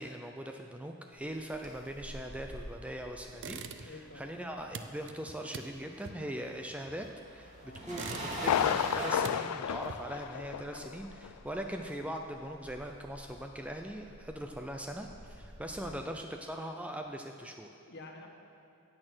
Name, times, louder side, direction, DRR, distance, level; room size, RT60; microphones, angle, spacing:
voice 1, 0.0-7.5 7.8-17.7, right 1 dB, 5° right, 4 dB, 0.5 m, -41 dB
sound 1, 1.5-4.9 5.2-15.9, right 1 dB, 35° right, 2.5 m, -45 dB
sound 2, 3.3-4.1 4.4-7.3 7.7-8.7 9.0-10.3, right 5 dB, 55° right, 0.6 m, -45 dB
voice 2, 3.8-4.3 7.6-7.8 15.7-16.0 17.8-18.3, left 2 dB, 50° left, 1 dB, 1.6 m, -49 dB
Thunder, 8.4-11.0 11.2-11.3 11.9-12.0, left 9 dB, 85° left, 0.3 m, -32 dB
17.5 x 6.6 x 6.2 m, 2.8 s
head